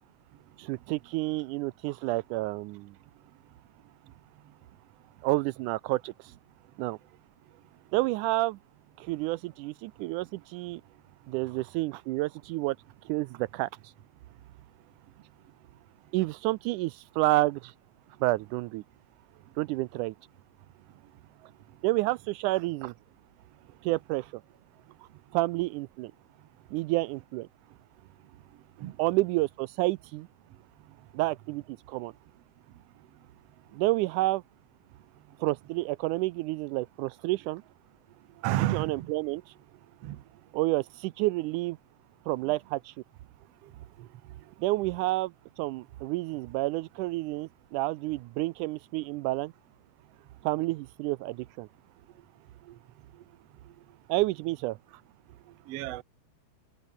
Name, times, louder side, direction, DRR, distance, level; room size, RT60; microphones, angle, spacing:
voice 1, 0.6-3.0 5.2-6.3 6.8-7.0 7.9-8.6 9.0-10.8 11.3-12.8 13.1-13.9 16.1-17.7 18.2-18.8 19.6-20.2 21.8-22.9 23.8-24.4 25.3-26.1 26.7-27.5 29.0-30.3 31.1-32.1 33.7-34.4 35.4-37.6 38.7-39.4 40.5-41.8 42.3-42.9 44.6-49.5 50.4-51.7 54.1-54.8, right 19 dB, 80° right, 2.0 m, -29 dB
voice 2, 38.4-39.1 40.0-40.2 55.7-56.0, right 14 dB, 65° right, 1.7 m, -30 dB
omnidirectional pair, 3.6 m